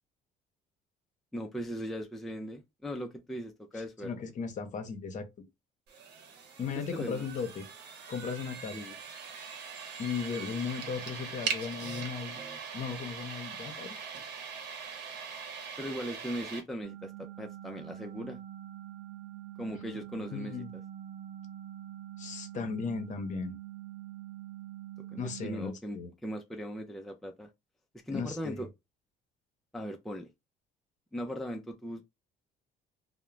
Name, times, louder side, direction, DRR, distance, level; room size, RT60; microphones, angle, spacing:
voice 1, 1.3-4.1 6.7-7.2 8.7-8.9 15.8-18.4 19.6-20.5 25.1-27.5 28.1-28.7 29.7-30.3 31.1-32.0, equal, ahead, 0.4 m, -39 dB
voice 2, 3.7-5.3 6.6-7.7 8.1-8.9 10.0-12.4 12.7-14.0 20.3-20.7 22.2-23.5 25.2-26.1 28.1-28.6, left 5 dB, 45° left, 0.7 m, -36 dB
sound 1, 5.9-16.6, right 6 dB, 80° right, 0.9 m, -41 dB
sound 2, 16.8-25.7, right 12 dB, 60° right, 0.5 m, -45 dB
2.4 x 2.1 x 3.1 m
cardioid pair, 110°, 17 cm